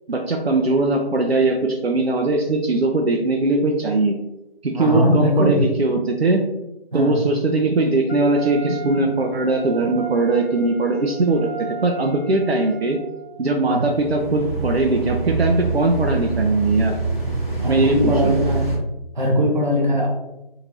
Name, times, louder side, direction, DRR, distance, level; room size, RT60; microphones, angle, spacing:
voice 1, 0.1-4.2 4.6-6.4 6.9-13.0 13.4-16.9 17.7-18.4, right 2 dB, 85° right, 2 dB, 0.6 m, -20 dB
voice 2, 4.7-5.6 6.9-7.2 13.6-13.9 17.6-18.7 19.1-20.1, equal, 50° right, -1 dB, 0.7 m, -20 dB
Wind instrument woodwind instrument, 8.1-13.4, right 5 dB, 90° left, 0.8 m, -36 dB
sound 1, 13.7-18.8, right 3 dB, 15° right, 1.0 m, -25 dB
3.7 x 2.7 x 3.0 m, 0.94 s
figure-of-eight pair, 160°, 30 cm